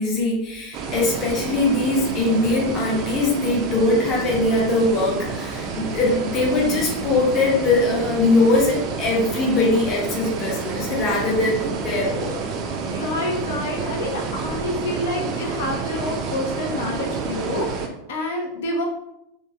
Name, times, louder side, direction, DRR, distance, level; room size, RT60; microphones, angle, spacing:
voice 1, 0.0-12.4, left 2 dB, 30° left, -1 dB, 0.6 m, -21 dB
sound 1, 0.7-17.9, right 4 dB, 30° right, 0.3 m, -29 dB
voice 2, 12.9-18.8, left 1 dB, 80° left, 1 dB, 0.7 m, -28 dB
3.0 x 2.4 x 2.2 m, 0.83 s
supercardioid pair, 165°, 0 cm